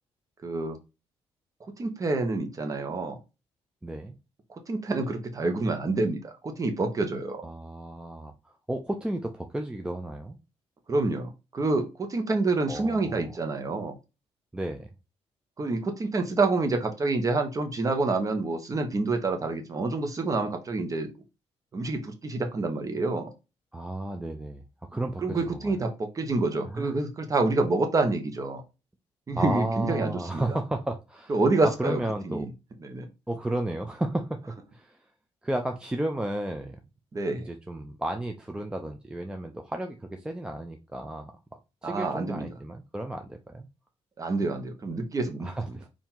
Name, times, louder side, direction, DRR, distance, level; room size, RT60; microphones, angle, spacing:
voice 1, 0.4-0.8 1.8-3.2 4.7-7.5 10.9-14.0 15.6-21.1 21.7-23.3 25.2-28.6 29.3-30.6 31.3-32.5 32.8-33.1 37.1-37.5 41.8-42.5 44.2-45.5, right 3 dB, 30° right, 1.2 m, -27 dB
voice 2, 3.8-4.2 7.4-10.4 12.7-13.3 14.5-14.9 23.7-24.6 24.9-25.7 26.7-26.9 29.3-31.4 31.8-32.5 33.3-34.4 34.7-35.0 35.4-36.8 37.4-41.3 41.8-43.7 45.4-45.9, right 1 dB, 10° right, 0.6 m, -33 dB
4.6 x 2.8 x 3.8 m
cardioid pair, 115°, 11 cm